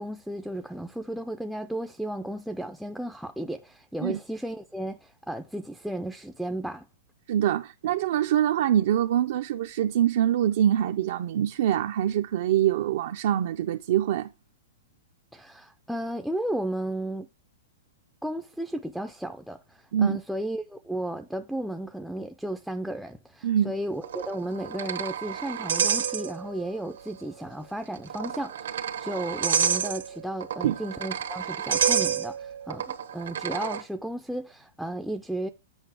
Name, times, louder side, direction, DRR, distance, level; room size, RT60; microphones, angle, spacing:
voice 1, 0.0-6.9 15.3-17.3 18.2-35.5, right 1 dB, ahead, 0.4 m, -34 dB
voice 2, 7.3-14.3 19.9-20.2 23.4-23.7 30.6-30.8, right 10 dB, 55° right, 0.5 m, -24 dB
sound 1, 24.0-26.7 27.0-27.1 28.0-33.8, right 8 dB, 85° right, 1.1 m, -29 dB
8.0 x 5.2 x 4.7 m
hypercardioid pair, 165°, 0 cm